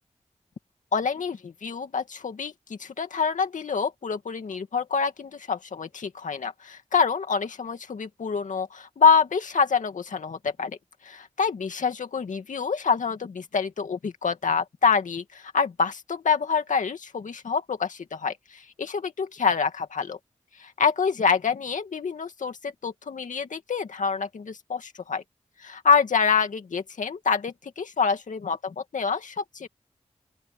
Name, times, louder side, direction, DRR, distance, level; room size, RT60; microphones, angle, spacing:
voice 1, 0.9-10.8 11.0-20.2 20.6-25.2 25.6-29.7, left 5 dB, 85° left, 2.3 m, -26 dB
open air
cardioid pair, 45°, 13 cm